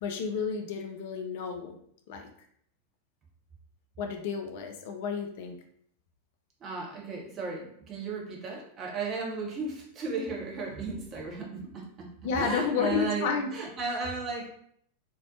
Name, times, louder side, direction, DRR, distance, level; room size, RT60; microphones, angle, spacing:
voice 1, 0.0-1.8 2.1-2.3 4.0-5.6 12.2-13.5, left 6 dB, 50° left, 4 dB, 0.3 m, -31 dB
voice 2, 6.6-14.5, right 4 dB, 30° right, -1 dB, 0.7 m, -35 dB
2.5 x 2.0 x 2.7 m, 0.67 s
figure-of-eight pair, 90°, 0 cm